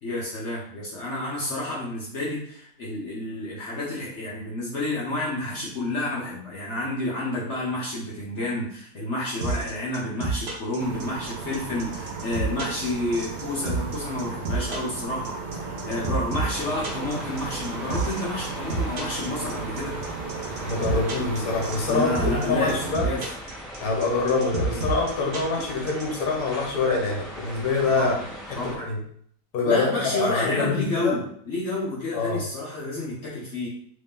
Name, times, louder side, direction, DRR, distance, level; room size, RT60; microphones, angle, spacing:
voice 1, 0.0-19.9 21.9-23.3 27.9-28.2 28.6-28.9 29.6-33.7, left 2 dB, 50° left, -5 dB, 1.0 m, -30 dB
sound 1, 9.4-26.2, right 3 dB, 50° right, 0.8 m, -29 dB
sound 2, 10.8-22.9, right 4 dB, 80° right, 1.2 m, -35 dB
sound 3, 16.3-28.7, equal, 5° left, 0.7 m, -39 dB
voice 2, 20.6-23.1 23.8-28.1 28.7-29.0 29.5-29.9 30.1-31.1 32.1-32.4, left 4 dB, 70° left, 0 dB, 1.4 m, -25 dB
3.2 x 2.7 x 3.6 m, 0.63 s
omnidirectional pair, 1.8 m